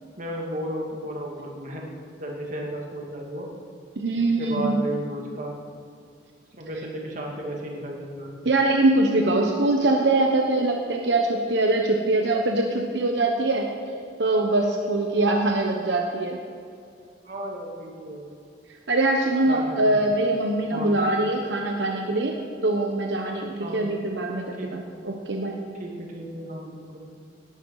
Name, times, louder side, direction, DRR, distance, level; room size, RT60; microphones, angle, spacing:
voice 1, 0.2-1.8 2.2-3.5 4.4-5.5 6.5-8.4 17.2-18.4 19.5-19.6 20.7-20.9 23.6-23.8 24.6-24.8 25.7-27.0, right 1 dB, 45° right, -1 dB, 2.4 m, -33 dB
voice 2, 4.0-4.8 8.4-13.7 14.2-16.4 18.9-22.3 22.6-25.6, right 2 dB, 80° right, 1 dB, 1.2 m, -23 dB
18.0 x 11.5 x 4.9 m, 2.4 s
head